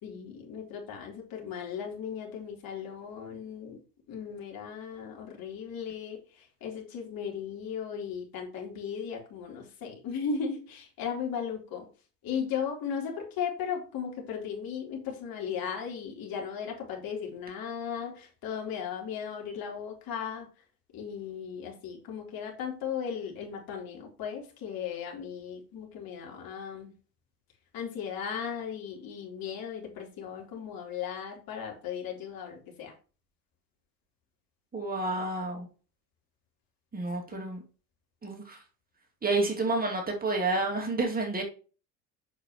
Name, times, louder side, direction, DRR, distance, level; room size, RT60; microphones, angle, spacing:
voice 1, 0.0-3.8 4.1-11.9 12.2-20.5 20.9-26.9 27.7-32.9 37.3-37.5, left 7 dB, 45° left, 0 dB, 3.8 m, -36 dB
voice 2, 34.7-35.7 36.9-37.6 38.2-38.6 39.2-41.4, right 2 dB, 20° right, 1 dB, 2.5 m, -29 dB
8.1 x 6.6 x 3.0 m, 0.36 s
hypercardioid pair, 80°, 50 cm